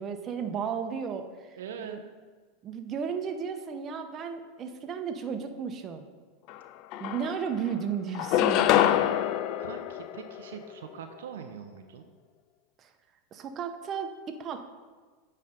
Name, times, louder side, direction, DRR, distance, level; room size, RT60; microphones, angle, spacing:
voice 1, 0.0-1.5 1.8-2.0 2.6-6.1 7.0-9.1 12.8-12.9 13.3-14.6, right 7 dB, 35° right, 6 dB, 0.8 m, -34 dB
voice 2, 1.6-2.0 9.6-12.1, right 7 dB, 75° right, 6 dB, 0.5 m, -42 dB
sound 1, 6.5-6.6 6.9-7.7 8.1-10.7, left 12 dB, 50° left, 0.3 m, -26 dB
9.2 x 3.3 x 5.1 m, 1.4 s
hypercardioid pair, 95°, 0 cm